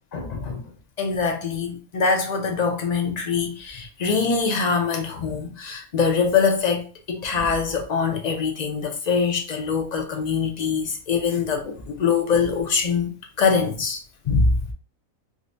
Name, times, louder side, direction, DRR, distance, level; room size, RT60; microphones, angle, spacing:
voice 1, 0.1-0.6 1.0-14.0 14.3-14.6, left 5 dB, 55° left, 0.5 m, -23 dB
4.8 x 2.1 x 2.5 m
omnidirectional pair, 1.4 m